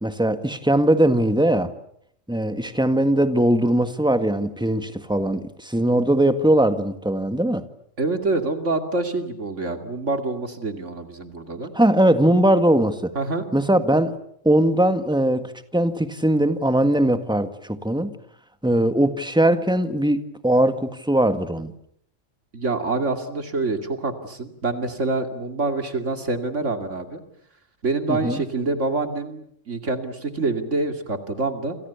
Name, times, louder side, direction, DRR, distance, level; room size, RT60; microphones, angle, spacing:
voice 1, 0.0-1.7 2.3-7.6 11.7-13.1 13.5-14.2 14.4-18.1 18.6-21.7 28.1-28.4, right 1 dB, 5° right, 1.7 m, -20 dB
voice 2, 8.0-11.7 13.1-13.4 22.5-27.2 27.8-31.8, right 3 dB, 65° right, 2.7 m, -26 dB
29.0 x 27.5 x 7.1 m
omnidirectional pair, 1.4 m